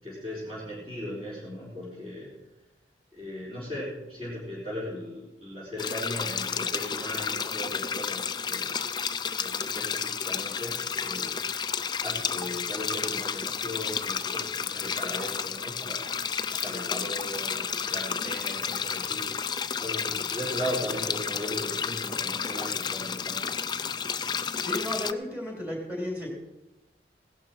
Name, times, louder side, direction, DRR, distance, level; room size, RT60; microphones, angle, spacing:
voice 1, 0.0-2.3 3.1-8.8 9.3-11.3 12.0-16.2 16.5-19.3 19.8-23.6, equal, 30° right, -9 dB, 4.3 m, -37 dB
sound 1, 5.8-25.1, left 7 dB, 25° left, 0.4 m, -31 dB
voice 2, 24.6-26.3, left 1 dB, 10° right, -2 dB, 3.5 m, -33 dB
17.0 x 12.0 x 4.5 m, 1.0 s
head